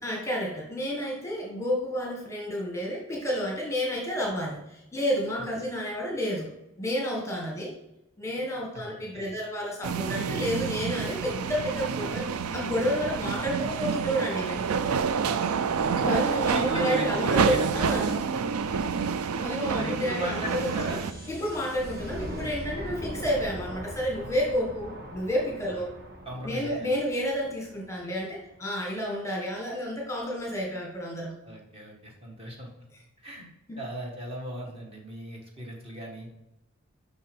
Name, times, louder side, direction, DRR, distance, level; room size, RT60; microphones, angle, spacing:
voice 1, 0.0-6.5 6.8-7.7 8.2-14.8 16.0-18.2 19.4-20.7 21.3-25.9 26.4-31.3 33.7-33.8, equal, 15° left, -1 dB, 1.4 m, -30 dB
voice 2, 8.7-9.4 15.2-17.9 19.0-19.1 19.7-21.0 22.8-23.0 25.7-25.8 26.2-26.7 31.4-32.8 33.2-33.5 33.8-36.3, equal, 25° right, 0 dB, 1.7 m, -38 dB
sound 1, 9.8-21.1, right 6 dB, 85° right, 0.5 m, -28 dB
sound 2, 16.5-29.2, equal, 45° right, 1.6 m, -43 dB
6.8 x 5.6 x 5.4 m, 0.90 s
head